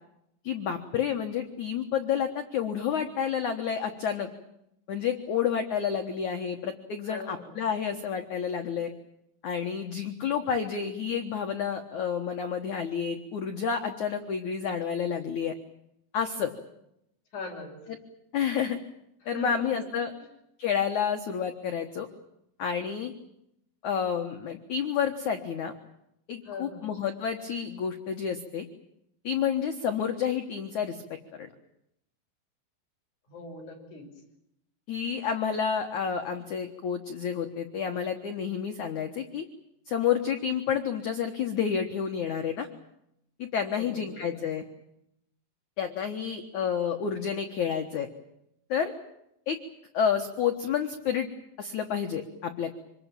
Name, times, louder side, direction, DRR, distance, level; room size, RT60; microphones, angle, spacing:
voice 1, 0.4-4.3 4.9-8.9 9.4-15.5 16.1-16.5 18.3-18.8 19.3-20.1 20.6-22.1 22.6-23.1 23.8-25.8 26.3-28.7 29.2-31.0 31.4-31.5 34.9-39.4 39.9-42.7 43.4-44.6 45.8-48.1 48.7-48.9 49.5-49.6 49.9-51.3 51.6-52.7, left 7 dB, 75° left, 5 dB, 1.7 m, -29 dB
voice 2, 7.0-7.6 17.3-18.0 19.2-20.2 26.4-26.9 33.3-34.1 43.8-44.4, left 2 dB, 40° left, 1 dB, 7.0 m, -41 dB
26.0 x 21.0 x 8.9 m, 0.80 s
omnidirectional pair, 5.6 m